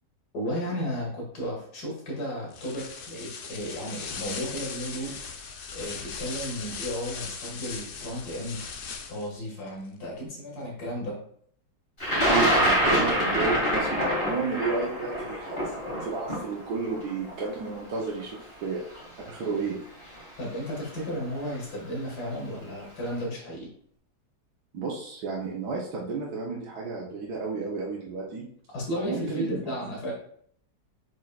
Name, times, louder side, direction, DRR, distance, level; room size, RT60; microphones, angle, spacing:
voice 1, 0.3-5.2 5.7-8.6 9.1-11.2 20.4-23.7 28.7-30.1, equal, 60° left, -2 dB, 2.4 m, -34 dB
sound 1, 2.5-9.4, left 5 dB, 80° left, 0.5 m, -38 dB
Thunder, 12.0-18.0 18.9-19.0 20.2-20.4 20.7-21.2, equal, 35° left, 2.4 m, -25 dB
voice 2, 12.2-15.7 16.0-18.8 19.3-19.8 24.7-28.5 29.0-29.6, right 4 dB, 65° right, -3 dB, 1.5 m, -32 dB
7.6 x 5.5 x 2.4 m, 0.62 s
omnidirectional pair, 1.9 m